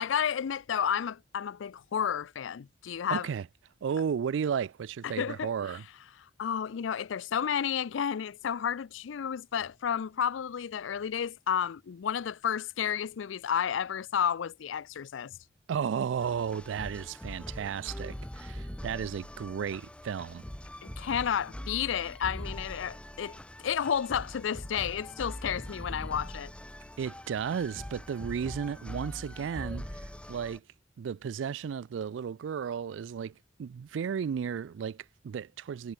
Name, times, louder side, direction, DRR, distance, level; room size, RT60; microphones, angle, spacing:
voice 1, 0.0-3.3 5.0-5.5 6.2-15.4 20.8-26.5, left 8 dB, 90° left, 0.4 m, -31 dB
voice 2, 3.1-3.5 3.8-5.8 15.7-20.4 27.0-30.6 31.0-35.9, right 7 dB, 80° right, 0.3 m, -34 dB
sound 1, 16.2-30.6, equal, 5° left, 0.9 m, -42 dB
head